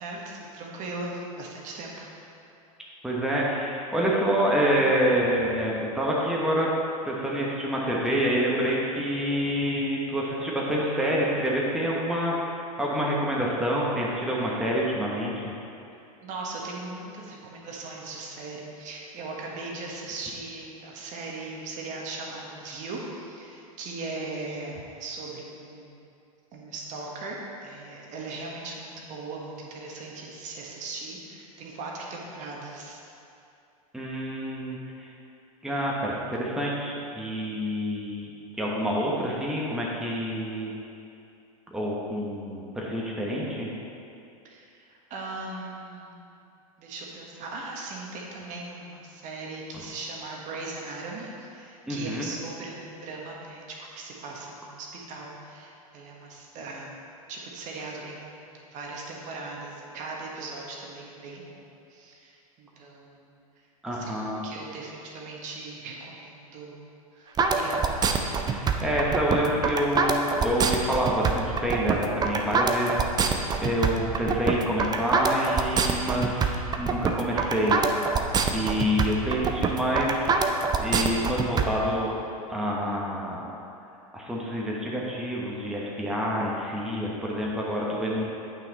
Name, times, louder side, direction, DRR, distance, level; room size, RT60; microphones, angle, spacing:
voice 1, 0.0-2.1 16.2-26.0 26.5-33.0 44.4-46.3 46.8-57.0 57.3-58.5 58.7-63.3 63.9-66.8 67.1-67.9, right 3 dB, 40° right, -2 dB, 1.4 m, -39 dB
voice 2, 3.0-6.7 7.0-15.5 33.9-35.1 35.6-40.7 41.7-43.7 51.9-52.3 63.8-64.4 68.5-77.8 78.5-80.4 80.8-82.1 82.5-83.5 84.1-88.2, equal, 5° right, -5 dB, 1.2 m, -27 dB
sound 1, 67.4-81.6, right 5 dB, 20° right, 0.6 m, -25 dB
8.7 x 5.8 x 4.1 m, 2.7 s
hypercardioid pair, 90°, 19 cm